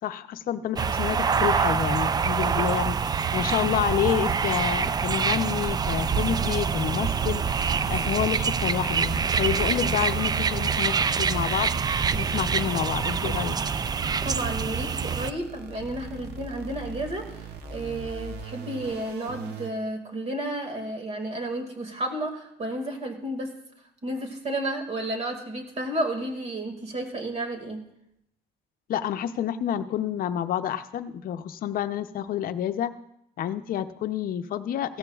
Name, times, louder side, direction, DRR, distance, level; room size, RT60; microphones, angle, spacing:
voice 1, 0.0-13.6 28.9-32.9 33.4-35.0, left 10 dB, 60° left, 9 dB, 0.7 m, -29 dB
sound 1, 0.8-15.3, right 6 dB, 25° right, 0.3 m, -25 dB
sound 2, 3.0-19.7, right 8 dB, 80° right, 1.0 m, -43 dB
sound 3, 4.7-18.5, left 3 dB, ahead, 2.0 m, -46 dB
voice 2, 14.2-23.6 24.0-27.9, right 1 dB, 40° right, 4 dB, 2.2 m, -32 dB
16.5 x 13.5 x 2.4 m, 0.78 s
cardioid pair, 110°, 17 cm